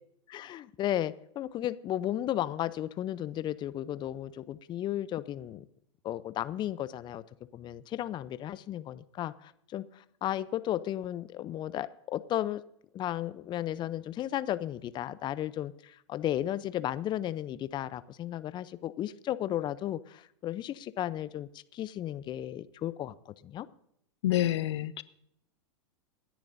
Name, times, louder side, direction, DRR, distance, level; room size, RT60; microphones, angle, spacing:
voice 1, 0.3-5.6 6.0-7.2 7.5-12.6 12.9-23.7, left 12 dB, 30° left, 15 dB, 0.6 m, -34 dB
voice 2, 24.2-25.0, left 13 dB, 70° left, 15 dB, 0.8 m, -27 dB
27.0 x 10.5 x 2.7 m, 0.74 s
hypercardioid pair, 100°, 15 cm